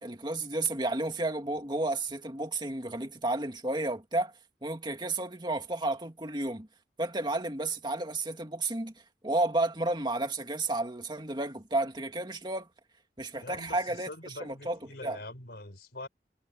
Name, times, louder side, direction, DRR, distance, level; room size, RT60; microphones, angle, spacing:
voice 1, 0.0-4.3 4.6-6.7 7.0-8.9 9.2-12.7 13.2-15.2, right 2 dB, 25° right, 2.2 m, -32 dB
voice 2, 13.4-16.1, left 2 dB, 65° left, 4.3 m, -44 dB
head